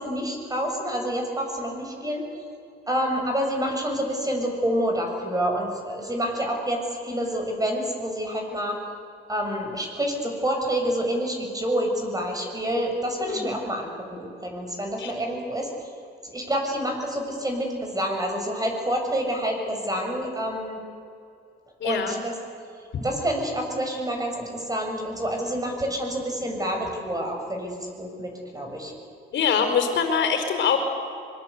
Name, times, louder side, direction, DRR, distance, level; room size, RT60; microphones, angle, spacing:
voice 1, 0.0-2.2 2.9-8.8 9.3-15.7 16.2-20.8 21.8-22.3 23.0-28.9, equal, 20° right, 2 dB, 6.8 m, -28 dB
voice 2, 21.8-22.1 29.3-30.8, left 6 dB, 70° left, 4 dB, 4.6 m, -23 dB
24.0 x 22.0 x 8.4 m, 2.5 s
cardioid pair, 90°, 20 cm